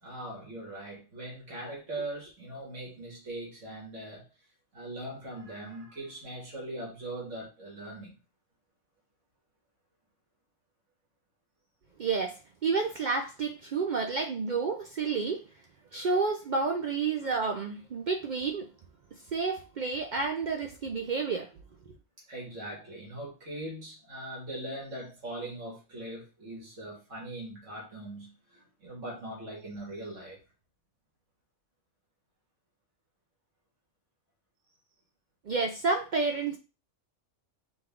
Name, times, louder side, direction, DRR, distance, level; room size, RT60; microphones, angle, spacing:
voice 1, 0.0-4.3 4.7-8.2 15.9-16.1 22.3-30.4, right 1 dB, 90° right, 2.1 m, -41 dB
voice 2, 12.0-15.5 15.9-18.7 19.1-21.5 35.5-36.6, right 4 dB, 65° right, 0.4 m, -30 dB
5.2 x 2.4 x 3.5 m
omnidirectional pair, 1.3 m